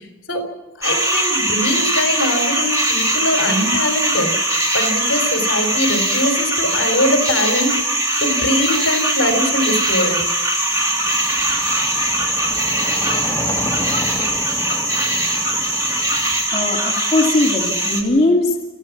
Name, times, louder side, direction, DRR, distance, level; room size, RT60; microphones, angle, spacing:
voice 1, 0.8-4.3 4.7-7.8 8.2-10.2, left 1 dB, 65° left, 5 dB, 3.7 m, -21 dB
sound 1, 0.8-18.0, right 1 dB, 15° right, 2.7 m, -20 dB
sound 2, 10.6-16.7, left 1 dB, 15° left, 1.4 m, -31 dB
voice 2, 16.1-18.7, left 2 dB, 30° left, -3 dB, 2.5 m, -19 dB
26.0 x 15.0 x 7.3 m, 1.1 s
head